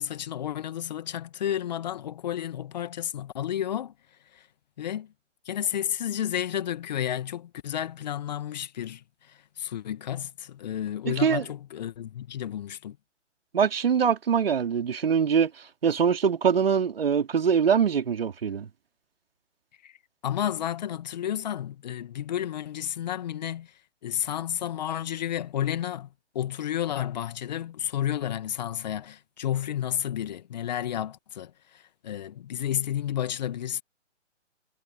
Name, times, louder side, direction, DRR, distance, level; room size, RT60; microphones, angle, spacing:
voice 1, 0.0-3.9 4.3-4.5 4.8-5.1 5.5-13.0 19.8-19.9 20.2-23.7 24.0-26.1 26.3-33.8, left 10 dB, 35° left, 2.2 m, -31 dB
voice 2, 11.1-11.4 13.5-15.5 15.8-18.7, right 7 dB, 50° right, 3.5 m, -23 dB
figure-of-eight pair, 135°, 37 cm